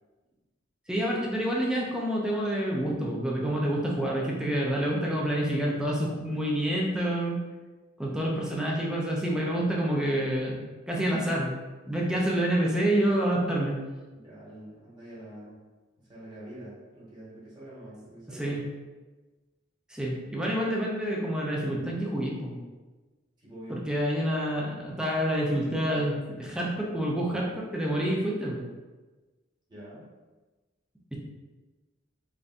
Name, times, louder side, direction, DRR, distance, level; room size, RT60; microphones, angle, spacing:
voice 1, 0.9-7.4 8.0-11.5 11.9-13.8 18.3-18.6 19.9-22.6 23.7-28.7 31.1-31.2, right 1 dB, 5° right, -3 dB, 0.5 m, -28 dB
voice 2, 14.1-15.6 16.0-18.6 23.4-23.8 29.7-30.1, right 1 dB, 25° right, -9 dB, 1.4 m, -45 dB
3.4 x 2.7 x 2.5 m, 1.2 s
head